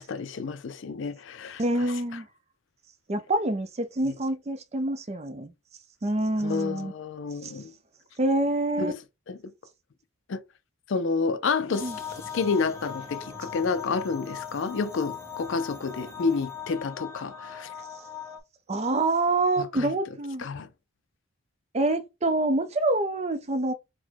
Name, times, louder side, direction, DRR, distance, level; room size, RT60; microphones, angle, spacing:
voice 1, 0.0-1.9 4.1-4.2 6.4-7.7 8.8-9.0 9.3-9.4 10.3-10.4 10.9-11.9 12.3-17.7 19.6-19.9 20.4-20.7, left 4 dB, 60° left, 0.4 m, -29 dB
voice 2, 1.6-2.3 3.1-5.5 6.0-6.9 7.4-7.5 8.2-9.0 11.7-12.0 18.7-20.5 21.7-23.7, right 2 dB, 30° right, 0.5 m, -26 dB
sound 1, 11.7-18.4, left 7 dB, 10° left, 0.8 m, -40 dB
4.1 x 2.1 x 4.4 m
head